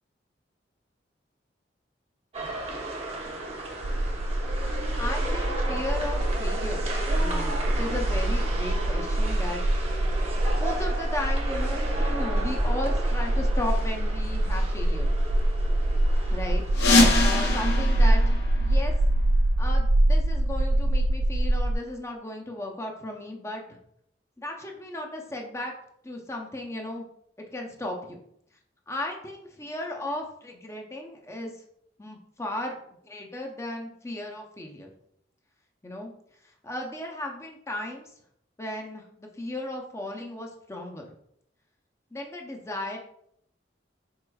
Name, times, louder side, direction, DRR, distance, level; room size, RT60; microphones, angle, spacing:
sound 1, 2.3-17.8, right 1 dB, 35° right, 0.8 m, -34 dB
sound 2, 3.8-21.8, right 1 dB, 65° right, 0.4 m, -25 dB
voice 1, 5.0-9.6 10.6-15.1 16.3-16.9 17.2-18.9 19.6-23.8 24.4-25.7 26.0-27.1 27.5-28.2 28.9-31.6 32.0-32.7 33.0-34.9 35.8-36.1 36.4-38.1 38.6-41.1 42.1-43.0, left 1 dB, 15° left, 1 dB, 0.6 m, -35 dB
sound 3, 16.7-19.3, left 2 dB, 65° left, 0.7 m, -24 dB
4.6 x 4.2 x 2.3 m, 0.70 s
head